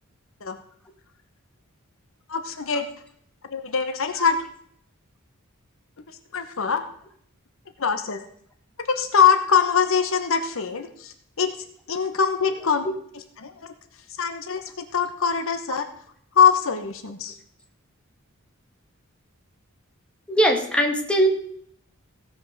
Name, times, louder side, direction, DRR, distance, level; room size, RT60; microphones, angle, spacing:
voice 1, 2.3-2.9 3.5-4.5 6.1-6.8 7.8-8.2 8.8-11.6 11.9-12.8 13.1-13.7 14.2-15.9 16.3-17.4, left 6 dB, 65° left, 8 dB, 1.1 m, -23 dB
voice 2, 20.3-21.3, equal, 5° left, 2 dB, 1.8 m, -20 dB
16.0 x 5.6 x 6.7 m, 0.64 s
head